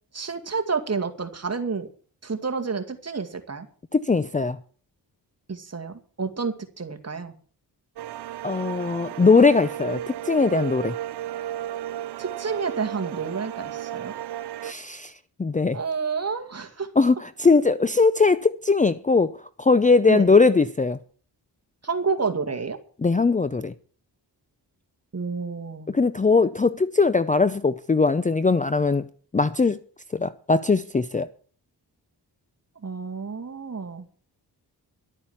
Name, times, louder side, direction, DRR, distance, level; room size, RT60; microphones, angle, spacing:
voice 1, 0.1-1.9 2.2-3.7 5.5-7.3 12.2-14.2 15.7-16.9 20.1-20.3 21.8-22.8 25.1-25.9 32.8-34.1, right 5 dB, 40° right, 2.2 m, -29 dB
voice 2, 3.9-4.6 8.4-10.9 14.6-15.1 15.4-15.8 17.0-19.3 19.6-21.0 23.0-23.7 25.9-29.1 29.3-29.8 30.1-31.3, left 4 dB, 20° left, 0.5 m, -20 dB
sound 1, 8.0-14.7, right 12 dB, 70° right, 0.6 m, -34 dB
12.0 x 8.9 x 7.3 m
cardioid pair, 75°, 41 cm